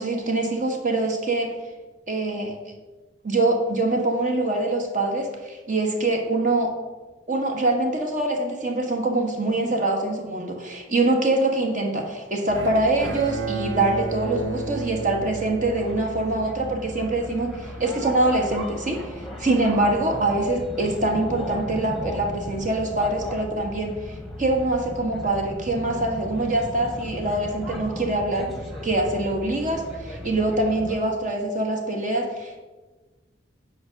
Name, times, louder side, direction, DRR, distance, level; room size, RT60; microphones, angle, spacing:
voice 1, 0.0-1.5 2.1-2.5 3.2-6.7 7.3-28.5 28.8-32.6, right 2 dB, 40° right, 1 dB, 1.5 m, -24 dB
sound 1, 12.5-31.0, left 1 dB, ahead, 1.3 m, -37 dB
Bowed string instrument, 12.5-16.8, right 3 dB, 85° right, 1.1 m, -33 dB
9.4 x 5.0 x 6.4 m, 1.2 s
head